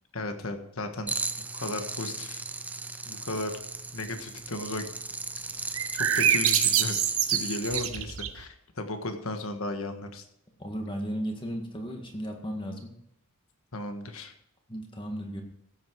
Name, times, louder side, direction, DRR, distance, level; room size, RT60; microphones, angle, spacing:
voice 1, 0.1-2.5 3.0-3.5 3.9-4.9 6.0-7.0 7.3-10.3 13.7-14.3, left 2 dB, 70° left, 7 dB, 1.4 m, -35 dB
sound 1, 1.1-7.9, right 3 dB, 5° right, 0.4 m, -35 dB
sound 2, 5.7-8.5, right 10 dB, 65° right, 0.9 m, -26 dB
voice 2, 10.6-12.9 14.7-15.4, equal, 20° left, 3 dB, 1.8 m, -35 dB
15.5 x 8.0 x 4.7 m, 0.79 s
head